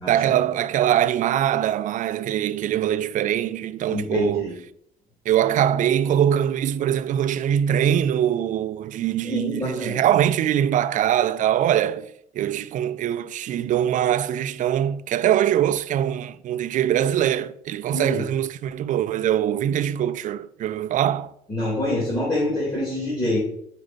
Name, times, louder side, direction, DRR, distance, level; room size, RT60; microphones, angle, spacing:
voice 1, 0.1-4.5 5.3-21.3, right 10 dB, 50° right, 0.4 m, -22 dB
voice 2, 3.9-4.5 9.2-10.0 17.9-18.2 21.5-23.4, left 1 dB, 25° left, 2.4 m, -26 dB
5.0 x 4.5 x 5.1 m
cardioid pair, 110°, 17 cm